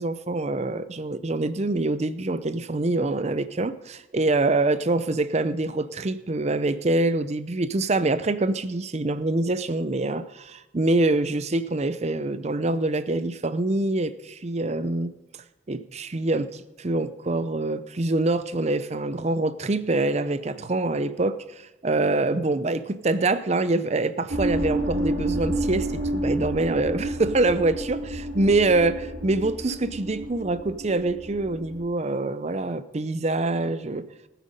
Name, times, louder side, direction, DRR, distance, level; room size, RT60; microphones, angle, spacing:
voice 1, 0.0-15.2 15.7-21.4 21.8-34.0, right 2 dB, 35° right, 14 dB, 0.6 m, -25 dB
sound 1, 24.3-31.8, right 1 dB, 70° right, 4.1 m, -30 dB
19.0 x 9.3 x 5.2 m, 1.0 s
head